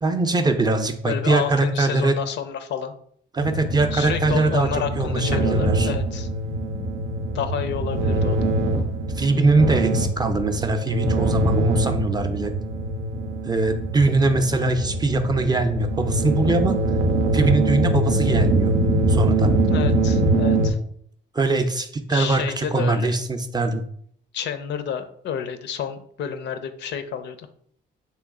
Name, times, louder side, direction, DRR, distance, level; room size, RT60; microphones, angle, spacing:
voice 1, 0.0-2.2 3.3-4.7 5.0-5.9 9.2-12.5 13.4-16.8 17.3-18.7 19.1-19.5 21.3-23.8, right 3 dB, 20° right, 7 dB, 0.4 m, -22 dB
voice 2, 1.0-2.9 3.9-6.3 7.3-8.5 19.7-20.8 22.1-23.2 24.3-27.5, left 8 dB, 65° left, 10 dB, 0.4 m, -30 dB
sound 1, 3.4-20.7, right 2 dB, 90° right, 0.5 m, -23 dB
3.1 x 3.1 x 3.6 m, 0.63 s
cardioid pair, 90°, 20 cm